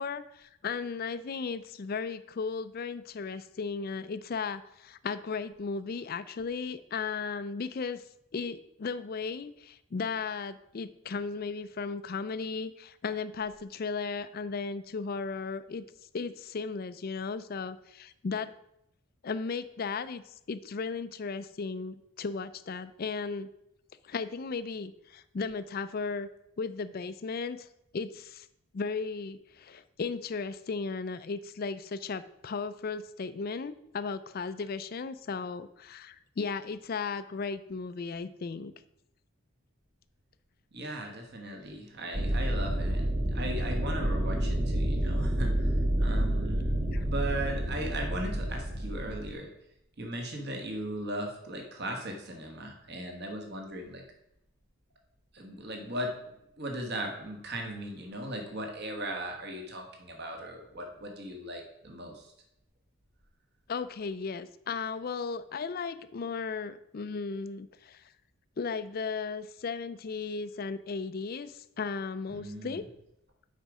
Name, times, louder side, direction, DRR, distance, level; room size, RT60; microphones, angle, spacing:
voice 1, 0.0-8.0 8.3-15.8 16.1-18.5 19.2-23.5 24.0-26.3 26.6-27.7 27.9-28.5 28.7-38.7 46.9-47.0 63.7-68.0 68.6-72.9, left 4 dB, 40° left, 13 dB, 0.4 m, -35 dB
voice 2, 40.7-49.5 50.0-54.0 55.3-62.3 72.3-72.8, right 1 dB, 45° right, 3 dB, 1.3 m, -38 dB
sound 1, 42.1-49.3, right 1 dB, 30° right, 1.1 m, -29 dB
8.1 x 5.2 x 4.8 m, 0.80 s
head